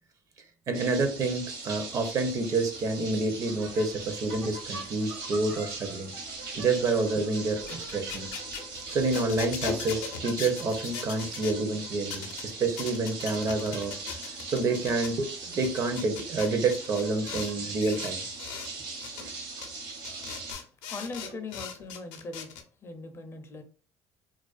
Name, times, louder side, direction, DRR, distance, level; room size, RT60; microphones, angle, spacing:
voice 1, 0.7-6.1 6.5-8.3 8.9-13.9 14.5-18.2 19.2-19.3, right 3 dB, 45° right, 7 dB, 0.6 m, -28 dB
sound 1, 0.7-20.5, right 4 dB, 65° right, 0.9 m, -40 dB
sound 2, 3.4-17.6, right 2 dB, 90° right, 1.1 m, -49 dB
sound 3, 7.6-11.6 12.1-12.4 12.8-15.1 15.5-17.5 17.8-18.7 19.0-19.2 19.6-19.7 20.0-22.6, left 6 dB, 80° left, 0.5 m, -38 dB
voice 2, 20.9-23.6, left 3 dB, 35° left, 6 dB, 0.5 m, -40 dB
2.3 x 2.2 x 2.4 m, 0.37 s
supercardioid pair, 95°, 8 cm